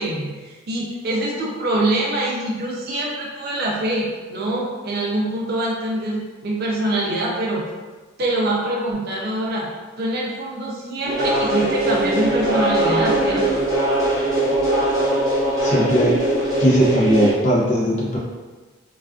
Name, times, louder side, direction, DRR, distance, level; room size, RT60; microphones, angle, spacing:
voice 1, 0.0-7.7 8.2-9.7 10.0-13.7, right 1 dB, 45° right, -3 dB, 0.4 m, -24 dB
sound 1, 11.1-17.3, right 1 dB, 15° right, 0.8 m, -20 dB
voice 2, 15.6-16.2 16.6-18.2, equal, 35° left, -5 dB, 0.5 m, -18 dB
2.4 x 2.3 x 2.3 m, 1.3 s
head